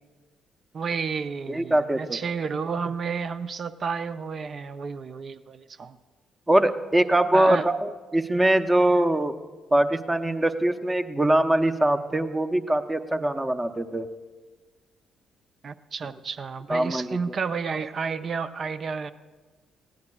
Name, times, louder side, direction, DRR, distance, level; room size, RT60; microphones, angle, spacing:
voice 1, 0.7-6.0 7.3-7.6 15.6-19.1, right 5 dB, 45° right, 12 dB, 0.5 m, -31 dB
voice 2, 1.5-2.2 6.5-9.4 9.7-14.1 16.7-17.2, right 1 dB, 20° right, 9 dB, 0.8 m, -22 dB
20.0 x 16.0 x 2.4 m, 1.3 s
hypercardioid pair, 45°, 0 cm